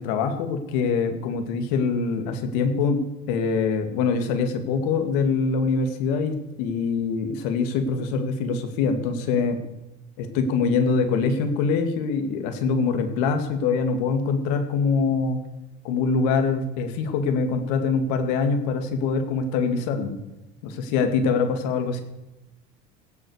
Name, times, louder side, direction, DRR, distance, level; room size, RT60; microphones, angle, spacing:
voice 1, 0.0-3.0 3.3-9.6 10.2-15.4 15.8-20.2 20.6-22.0, left 5 dB, 80° left, 7 dB, 2.3 m, -24 dB
16.5 x 8.0 x 6.5 m, 0.97 s
cardioid pair, 165°, 20 cm